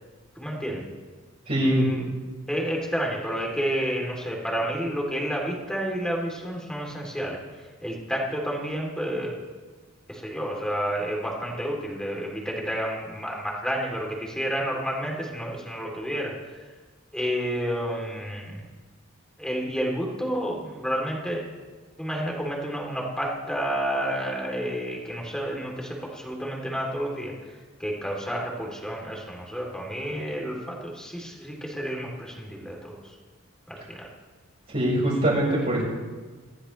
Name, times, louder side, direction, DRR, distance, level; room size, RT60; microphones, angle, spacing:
voice 1, 0.3-0.8 1.6-2.1 2.5-7.4 7.8-9.4 10.1-16.6 17.1-18.7 19.4-21.4 22.0-33.1 33.7-34.1, equal, 5° left, -2 dB, 3.4 m, -30 dB
voice 2, 1.5-1.8 34.7-35.8, right 1 dB, 40° right, -9 dB, 5.3 m, -22 dB
25.0 x 15.0 x 3.4 m, 1.4 s
head